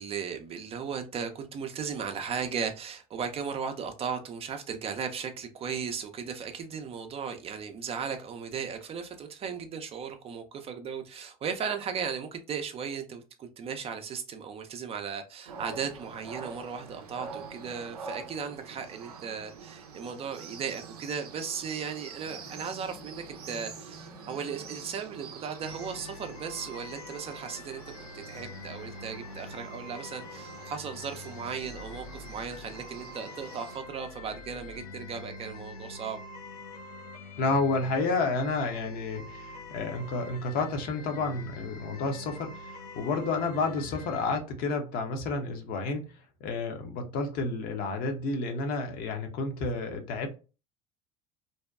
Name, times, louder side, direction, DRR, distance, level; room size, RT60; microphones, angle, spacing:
voice 1, 0.0-27.8 28.1-36.2, right 6 dB, 30° right, 0.4 m, -36 dB
sound 1, 15.5-33.8, right 5 dB, 85° right, 0.5 m, -46 dB
sound 2, 22.2-26.2, left 1 dB, 10° left, 0.7 m, -51 dB
sound 3, 25.6-44.4, left 3 dB, 90° left, 0.4 m, -45 dB
voice 2, 37.4-46.1 46.4-50.3, left 3 dB, 50° left, 0.7 m, -30 dB
2.7 x 2.1 x 2.2 m
hypercardioid pair, 80°, 19 cm